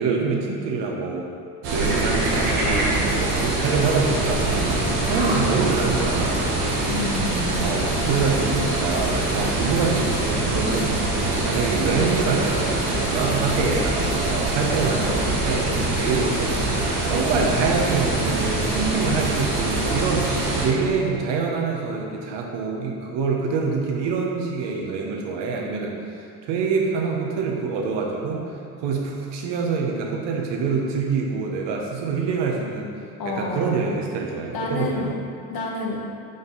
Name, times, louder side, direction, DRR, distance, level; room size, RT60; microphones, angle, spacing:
voice 1, 0.0-1.3 1.7-6.6 7.6-10.9 11.4-20.3 20.6-28.5 28.8-32.9 33.2-35.1, right 4 dB, 65° right, 0 dB, 1.2 m, -25 dB
sound 1, 1.6-20.7, right 2 dB, 85° right, 1.4 m, -24 dB
voice 2, 6.9-7.6 33.2-33.8 34.5-35.1 35.5-36.0, left 2 dB, 50° left, -1 dB, 1.3 m, -29 dB
5.4 x 5.4 x 4.0 m, 2.5 s
hypercardioid pair, 60°, 45 cm